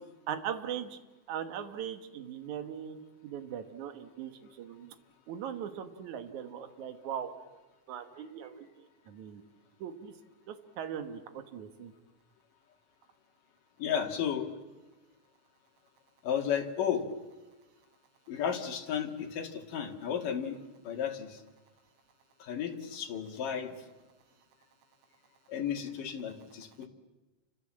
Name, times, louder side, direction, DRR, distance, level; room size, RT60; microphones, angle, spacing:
voice 1, 0.3-1.0 1.3-4.9 5.3-7.3 7.9-8.7 9.1-9.4 9.8-10.1 10.5-11.2 11.5-11.9, right 9 dB, 70° right, 7 dB, 2.8 m, -39 dB
voice 2, 13.8-14.5 16.2-17.1 18.3-21.4 22.4-23.8 25.5-26.9, left 8 dB, 90° left, 3 dB, 3.8 m, -33 dB
30.0 x 25.5 x 7.6 m, 1.2 s
omnidirectional pair, 3.7 m